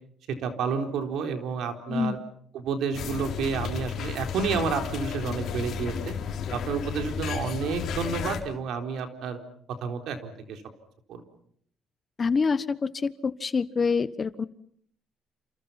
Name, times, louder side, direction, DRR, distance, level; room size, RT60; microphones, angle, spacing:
voice 1, 0.3-2.2 2.5-6.1 6.5-9.4 9.8-10.6 11.1-11.2, right 5 dB, 75° right, 6 dB, 4.1 m, -30 dB
sound 1, 2.9-8.4, left 7 dB, 65° left, 4.2 m, -33 dB
voice 2, 12.2-14.5, left 5 dB, 35° left, 15 dB, 1.2 m, -26 dB
29.0 x 28.5 x 5.8 m, 0.64 s
cardioid pair, 100°, 0 cm